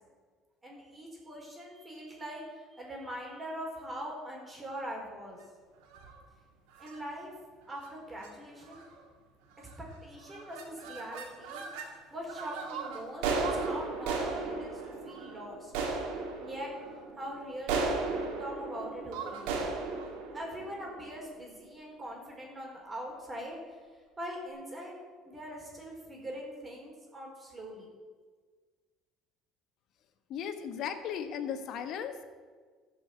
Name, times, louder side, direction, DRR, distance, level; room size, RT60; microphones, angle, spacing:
voice 1, 0.6-5.4 6.8-7.3 7.7-8.9 10.0-11.8 12.1-15.7 16.4-16.7 17.2-19.6 20.3-23.8 24.2-24.9 25.3-27.9, equal, 20° right, -1 dB, 4.5 m, -42 dB
sound 1, 5.8-6.2 6.8-7.0 7.7-7.9 8.2-8.3 8.6-9.0 9.6-9.9 10.2-11.9 12.3-21.5, right 4 dB, 80° right, 2.3 m, -36 dB
voice 2, 30.3-32.2, left 8 dB, 60° left, 8 dB, 1.3 m, -36 dB
13.5 x 5.8 x 8.6 m, 1.5 s
supercardioid pair, 75°, 0 cm